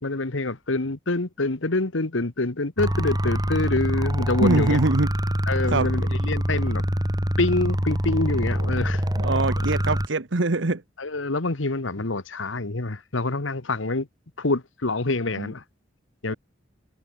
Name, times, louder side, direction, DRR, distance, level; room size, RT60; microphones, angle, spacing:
voice 1, 0.0-4.8 5.5-6.8 7.4-9.1 9.6-9.7 11.0-14.1 14.4-15.6 16.2-16.4, left 2 dB, 85° left, 1.5 m, -26 dB
sound 1, 2.8-10.1, equal, 20° right, 5.2 m, -25 dB
voice 2, 4.4-5.1 5.7-5.9 9.2-10.8 15.4-15.5 16.3-16.4, right 2 dB, 70° right, 1.2 m, -23 dB
head